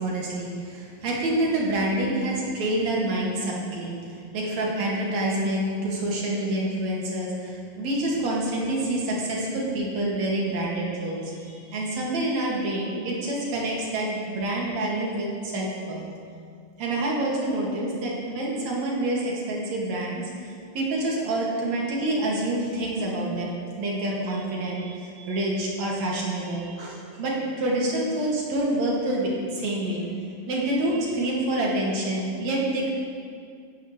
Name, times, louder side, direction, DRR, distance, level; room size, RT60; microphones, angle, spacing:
voice 1, 0.0-16.1 16.8-30.1 30.5-32.9, right 1 dB, 55° right, -4 dB, 3.1 m, -27 dB
16.0 x 11.0 x 3.2 m, 2.3 s
omnidirectional pair, 3.9 m